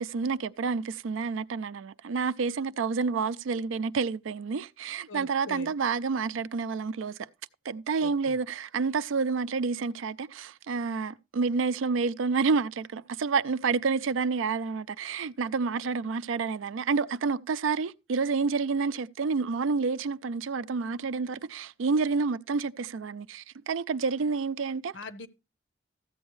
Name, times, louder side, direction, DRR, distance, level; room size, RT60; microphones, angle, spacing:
voice 1, 0.0-7.3 7.6-24.9, right 4 dB, 90° right, 0.4 m, -29 dB
voice 2, 5.1-5.7 8.0-8.4 24.9-25.3, left 3 dB, 80° left, 0.8 m, -42 dB
14.0 x 8.1 x 3.1 m
head